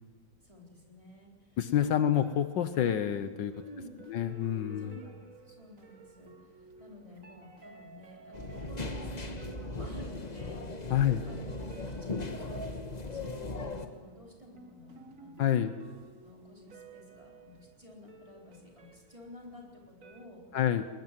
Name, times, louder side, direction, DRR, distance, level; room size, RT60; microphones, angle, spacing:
voice 1, 0.4-1.9 3.6-3.9 4.8-5.2 5.4-15.6 16.2-20.4, equal, 15° right, -1 dB, 4.1 m, -51 dB
voice 2, 1.6-3.5 4.1-4.9 10.9-11.2 15.4-15.7 20.5-20.9, left 10 dB, 75° left, 11 dB, 1.5 m, -28 dB
sound 1, 1.8-20.3, right 3 dB, 45° right, 1.9 m, -55 dB
sound 2, 8.3-13.9, left 2 dB, 25° left, 1.2 m, -38 dB
20.5 x 20.0 x 7.6 m, 1.5 s
omnidirectional pair, 2.1 m